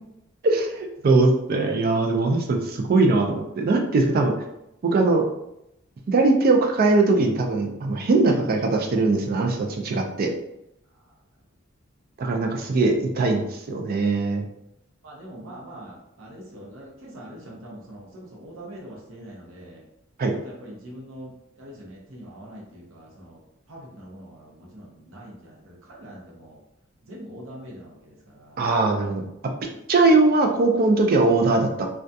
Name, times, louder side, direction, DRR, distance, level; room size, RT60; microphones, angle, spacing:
voice 1, 0.4-4.3 4.8-5.2 6.1-10.3 12.2-14.5 20.2-20.3 28.6-29.2 29.9-31.9, right 3 dB, 45° right, 3 dB, 0.4 m, -21 dB
voice 2, 15.0-19.8 20.4-21.3 21.6-23.4 23.7-26.6 27.0-28.7, right 1 dB, 70° right, -3 dB, 0.7 m, -43 dB
2.3 x 2.2 x 2.6 m, 0.82 s
head